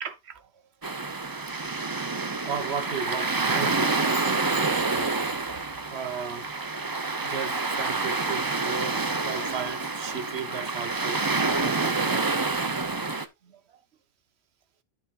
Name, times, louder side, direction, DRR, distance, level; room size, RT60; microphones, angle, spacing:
voice 1, 0.0-0.5 2.3-5.1 5.9-6.5 7.2-12.3 13.4-13.6, right 6 dB, 85° right, 1.2 m, -35 dB
sound 1, 0.8-13.3, right 3 dB, 25° right, 0.7 m, -28 dB
13.0 x 5.8 x 2.5 m
omnidirectional pair, 1.1 m